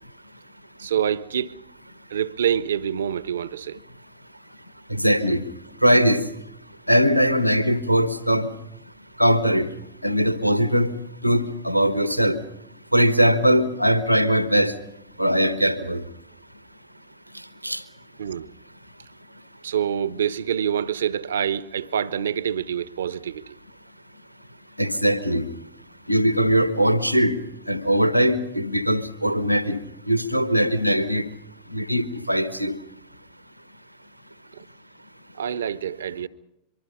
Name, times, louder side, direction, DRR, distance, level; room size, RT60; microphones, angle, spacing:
voice 1, 0.8-1.5 2.1-3.8 18.2-18.5 19.6-23.6 34.5-34.6 35.4-36.3, right 9 dB, 65° right, 0.9 m, -26 dB
voice 2, 4.9-5.4 5.8-6.2 6.9-8.5 9.2-9.7 10.0-10.9 11.2-12.4 12.9-14.7 15.2-16.0 17.6-17.8 24.8-25.4 26.1-27.4 27.7-29.8 30.1-31.2 31.7-32.7, equal, 90° right, 1.4 m, -20 dB
24.5 x 24.0 x 5.6 m
figure-of-eight pair, 90°, 0 cm